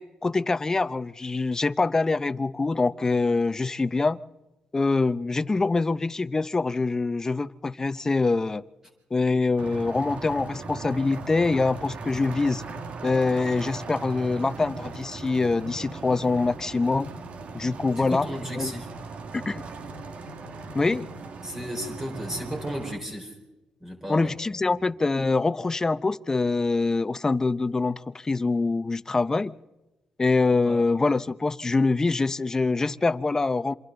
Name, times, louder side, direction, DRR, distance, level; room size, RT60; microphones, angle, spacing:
voice 1, 0.0-4.2 4.7-8.6 9.1-12.6 13.0-17.1 17.5-18.3 18.5-18.7 19.3-19.6 20.7-21.1 24.1-29.5 30.2-33.8, left 3 dB, 25° left, 15 dB, 0.7 m, -24 dB
sound 1, 9.6-23.0, right 3 dB, 60° right, 1.9 m, -38 dB
voice 2, 18.0-18.9 21.4-23.3 23.8-24.3 30.6-30.8, equal, 15° right, 2 dB, 4.9 m, -34 dB
27.5 x 25.0 x 3.9 m, 1.0 s
cardioid pair, 95°, 2 cm